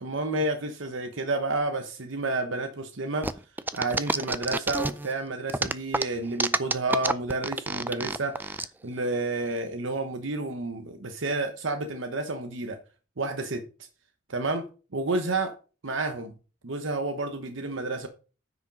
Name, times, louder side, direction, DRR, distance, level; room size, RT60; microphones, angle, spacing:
voice 1, 0.0-3.3 3.7-12.8 13.2-13.6 14.3-15.5 15.8-16.3 16.6-18.1, right 2 dB, 70° right, 1.0 m, -30 dB
sound 1, 3.2-5.1 5.5-8.7, right 2 dB, 10° right, 0.4 m, -28 dB
9.5 x 5.1 x 5.2 m
head